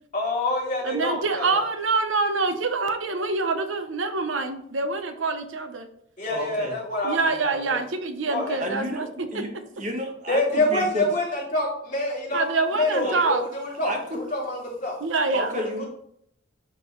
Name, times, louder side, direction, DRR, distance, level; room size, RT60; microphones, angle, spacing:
voice 1, 0.1-1.6 6.2-7.8 8.3-8.6 10.3-12.4 12.7-15.0, left 2 dB, 40° left, -5 dB, 2.8 m, -27 dB
voice 2, 0.8-5.9 7.0-9.7 12.3-13.4 15.0-15.5, right 3 dB, 80° right, 8 dB, 0.9 m, -26 dB
voice 3, 6.3-6.8 7.7-7.8 8.6-9.5 9.8-11.1 12.3-12.4 13.0-13.2 13.8-14.2 15.3-15.8, equal, 40° right, 3 dB, 1.3 m, -31 dB
10.5 x 4.5 x 3.1 m, 0.71 s
head